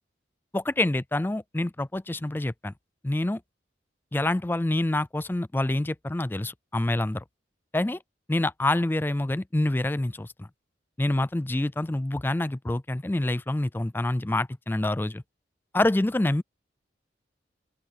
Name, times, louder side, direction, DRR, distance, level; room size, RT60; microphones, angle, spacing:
voice 1, 0.5-2.7 3.0-3.4 4.1-7.2 7.7-8.0 8.3-10.5 11.0-15.2 15.7-16.4, left 1 dB, 10° left, 0.3 m, -26 dB
open air
head